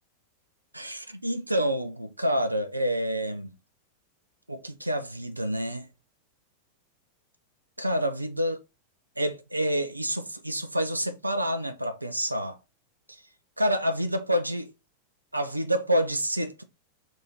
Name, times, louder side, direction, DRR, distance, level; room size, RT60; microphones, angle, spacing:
voice 1, 0.7-3.5 4.5-5.9 7.8-8.6 9.2-12.6 13.6-14.7 15.3-16.6, equal, 85° right, 0.5 m, -28 dB
2.7 x 2.7 x 4.1 m
figure-of-eight pair, 90°, 0 cm